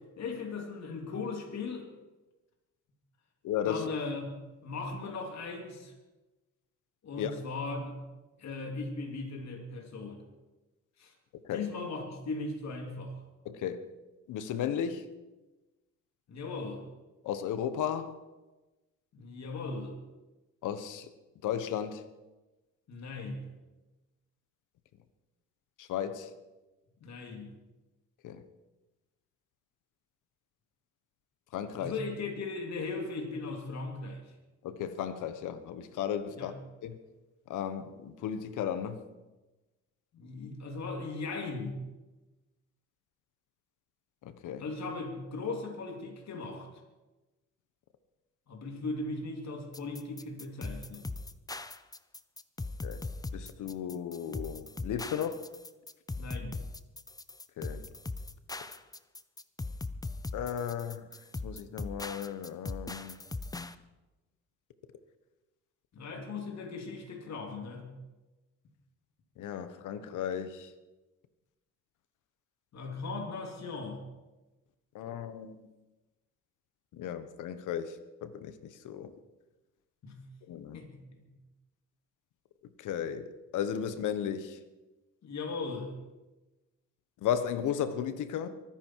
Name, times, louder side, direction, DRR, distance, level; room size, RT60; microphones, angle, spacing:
voice 1, 0.2-1.9 3.6-4.3 4.6-5.9 7.0-8.0 8.4-10.2 11.0-11.1 11.5-13.2 16.3-16.8 19.1-19.9 22.9-23.5 27.0-27.5 31.8-34.3 36.3-36.5 40.1-41.8 44.6-46.7 48.5-51.1 56.1-56.6 65.9-67.9 72.7-74.0 80.0-80.2 80.7-81.3 85.2-85.9, left 3 dB, 60° left, 2 dB, 3.3 m, -38 dB
voice 2, 3.4-3.9 7.2-7.3 11.4-11.6 13.4-13.8 14.3-15.1 17.2-18.1 20.6-21.1 21.4-22.0 25.8-26.3 28.2-28.4 31.5-31.9 34.6-36.5 36.8-37.0 37.5-39.1 44.2-44.6 52.8-53.0 53.3-55.4 57.6-57.8 60.3-61.1 61.4-63.2 69.4-70.7 74.9-75.7 76.9-78.0 78.2-79.1 80.5-80.8 82.8-84.6 87.2-88.5, left 9 dB, 85° left, 11 dB, 1.3 m, -35 dB
sound 1, 49.7-63.7, left 3 dB, 10° left, 0.7 m, -39 dB
23.5 x 10.5 x 4.7 m, 1.1 s
cardioid pair, 90°, 30 cm